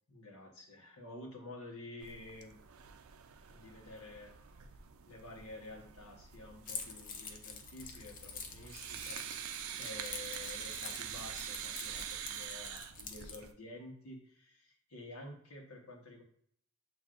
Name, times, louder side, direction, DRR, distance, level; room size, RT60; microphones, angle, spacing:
voice 1, 0.1-2.6 3.5-4.4 4.6-4.8 5.1-9.3 9.8-16.2, left 2 dB, 85° left, 0 dB, 1.1 m, -50 dB
sound 1, 2.0-13.5, right 9 dB, 70° right, 0.4 m, -46 dB
Keys jangling, 6.7-13.4, left 6 dB, 40° left, 0.5 m, -47 dB
7.5 x 2.6 x 2.5 m, 0.65 s
head